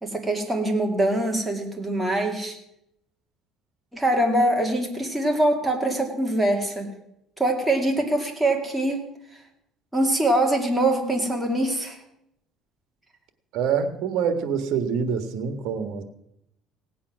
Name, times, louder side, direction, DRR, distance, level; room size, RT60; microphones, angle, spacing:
voice 1, 0.0-2.6 3.9-6.9 7.4-9.1 9.9-12.0, right 1 dB, 5° right, 1 dB, 2.2 m, -23 dB
voice 2, 13.5-16.0, right 6 dB, 65° right, 10 dB, 1.5 m, -25 dB
17.5 x 8.7 x 6.1 m, 0.81 s
cardioid pair, 135°, 0 cm